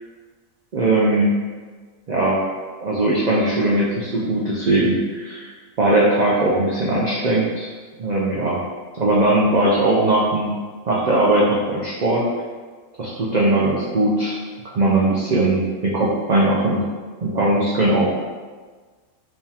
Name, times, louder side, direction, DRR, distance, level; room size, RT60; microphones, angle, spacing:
voice 1, 0.7-1.3 2.1-2.4 2.8-5.5 5.8-7.7 8.0-8.6 9.0-10.6 10.9-12.2 13.0-14.3 14.6-16.8 17.2-18.1, right 2 dB, 75° right, -5 dB, 0.4 m, -19 dB
3.6 x 3.1 x 2.7 m, 1.4 s
omnidirectional pair, 1.4 m